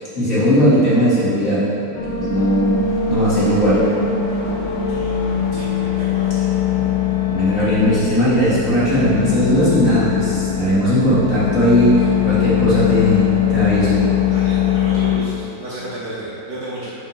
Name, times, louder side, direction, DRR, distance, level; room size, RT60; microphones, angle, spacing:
voice 1, 0.0-1.6 2.0-2.8 3.1-3.8 6.8-6.9 7.3-13.2 13.5-14.0, equal, 40° left, -10 dB, 2.0 m, -17 dB
sound 1, 1.9-15.2, left 8 dB, 80° left, 1.8 m, -21 dB
voice 2, 4.6-5.1 5.5-5.7 6.0-6.3 14.3-16.9, right 2 dB, 60° right, -7 dB, 1.1 m, -32 dB
5.7 x 5.2 x 5.1 m, 2.7 s
omnidirectional pair, 2.4 m